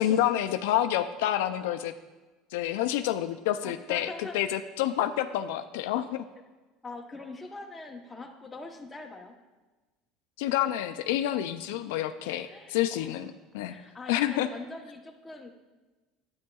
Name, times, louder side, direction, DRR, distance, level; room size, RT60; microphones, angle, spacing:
voice 1, 0.0-1.9 2.5-6.2 10.4-13.8 14.1-14.5, left 12 dB, 85° left, 9 dB, 0.3 m, -28 dB
voice 2, 3.6-4.4 6.8-9.3 12.5-13.1 13.6-15.5, left 3 dB, 15° left, 2 dB, 0.9 m, -43 dB
9.5 x 8.7 x 2.3 m, 1.2 s
supercardioid pair, 115°, 0 cm